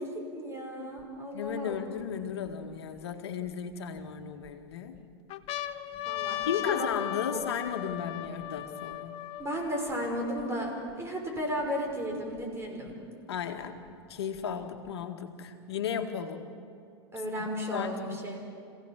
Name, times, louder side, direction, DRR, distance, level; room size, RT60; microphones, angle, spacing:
voice 1, 0.0-1.8 6.1-6.9 7.3-7.5 9.4-12.9 17.1-18.4, equal, 20° right, 1 dB, 6.0 m, -34 dB
sound 1, 1.0-1.1 1.7-3.0 3.7-4.5 4.9-5.0 5.3-10.9 11.6-11.7 11.9-12.9 13.9-14.9, left 12 dB, 45° left, 1.2 m, -38 dB
voice 2, 1.3-5.0 6.5-9.3 13.3-13.8 14.1-16.5 17.4-17.9, left 8 dB, 75° left, 5 dB, 1.8 m, -35 dB
27.0 x 17.0 x 7.4 m, 2.5 s
hypercardioid pair, 100°, 14 cm